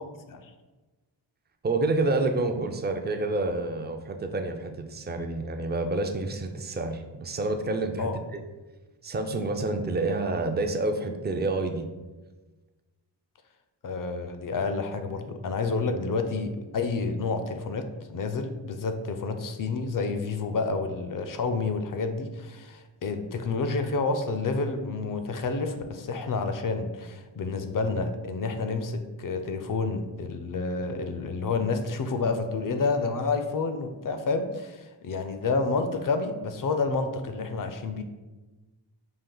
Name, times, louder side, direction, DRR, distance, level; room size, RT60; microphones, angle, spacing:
voice 1, 1.6-8.4 9.0-11.9, right 2 dB, 25° right, 5 dB, 0.4 m, -28 dB
voice 2, 13.8-38.0, left 4 dB, 45° left, 7 dB, 0.5 m, -29 dB
5.2 x 2.5 x 3.8 m, 1.2 s
wide cardioid pair, 100°, 47 cm